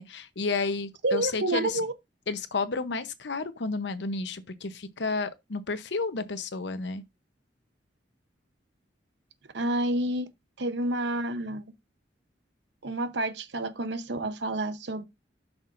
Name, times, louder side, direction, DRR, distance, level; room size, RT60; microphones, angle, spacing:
voice 1, 0.0-1.8 2.3-7.0, left 4 dB, 70° left, 0.8 m, -31 dB
voice 2, 1.0-1.9 9.5-10.3 10.6-11.6 12.8-15.0, right 1 dB, 70° right, 0.9 m, -29 dB
11.5 x 6.0 x 2.6 m
head